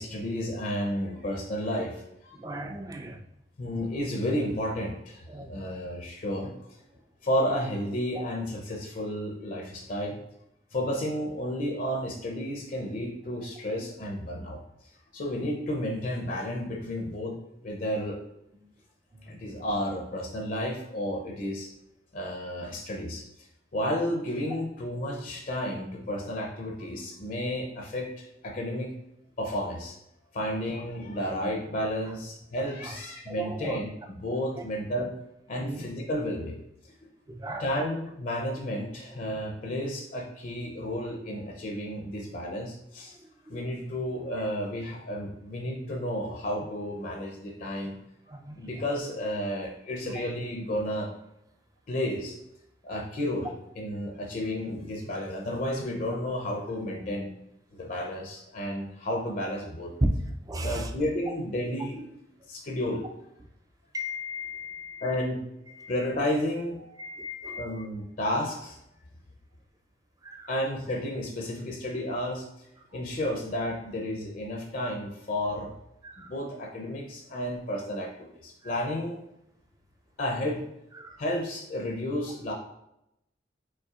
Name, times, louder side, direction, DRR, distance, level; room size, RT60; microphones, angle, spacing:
voice 1, 0.0-2.4 3.6-6.5 7.2-10.2 10.7-14.6 15.1-17.4 17.6-18.2 19.2-21.7 22.1-23.2 23.7-28.9 29.4-30.0 30.3-35.1 35.5-36.6 37.6-43.1 43.5-48.0 48.3-51.1 51.9-52.4 52.8-57.3 57.7-59.9 60.6-62.1 62.5-63.1 65.0-65.4 65.9-67.0 67.6-68.8 70.5-72.7 72.9-75.7 76.2-79.2 80.2-80.6 81.2-82.5, equal, 50° left, 1 dB, 0.5 m, -32 dB
voice 2, 2.3-3.2 5.3-5.7 8.2-8.3 13.8-13.9 19.1-19.3 30.4-30.5 31.3-31.4 32.8-33.0 33.3-33.8 34.6-34.7 35.0-35.1 35.5-35.8 37.3-37.8 43.5-43.6 48.3-48.7 60.0-60.1 60.5-60.9 63.9-65.3 65.7-65.9 67.0-67.9 70.2-70.5 72.9-73.0 76.0-76.3 78.6-78.7 81.0-81.2, equal, 20° right, 5 dB, 0.3 m, -36 dB
5.4 x 3.5 x 2.4 m, 0.83 s
head